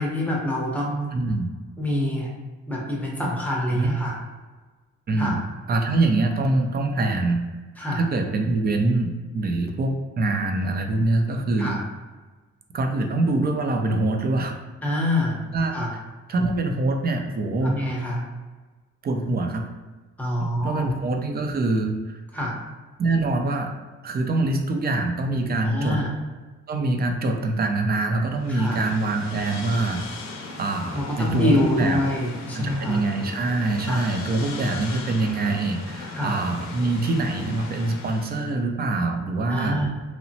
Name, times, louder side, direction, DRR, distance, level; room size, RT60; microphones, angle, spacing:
voice 1, 0.0-1.1 1.8-2.3 2.7-4.2 5.2-5.4 7.8-8.0 11.6-11.8 14.8-15.4 15.7-15.9 17.6-18.2 20.2-21.0 22.3-22.6 25.6-26.1 28.5-28.8 30.9-33.0 33.9-34.0 36.1-36.4 39.5-39.9, left 1 dB, 5° left, -4 dB, 0.7 m, -26 dB
voice 2, 1.1-1.5 3.7-3.9 5.1-5.4 5.7-7.4 7.9-11.8 12.7-14.5 15.5-15.7 16.3-17.8 19.0-19.7 20.6-22.2 23.0-23.7 24.0-26.0 26.7-30.0 30.6-32.0 32.5-39.8, right 2 dB, 30° right, 4 dB, 0.4 m, -24 dB
sound 1, 28.4-38.5, left 3 dB, 60° left, 0.5 m, -38 dB
2.9 x 2.0 x 2.7 m, 1.3 s
cardioid pair, 90°, 30 cm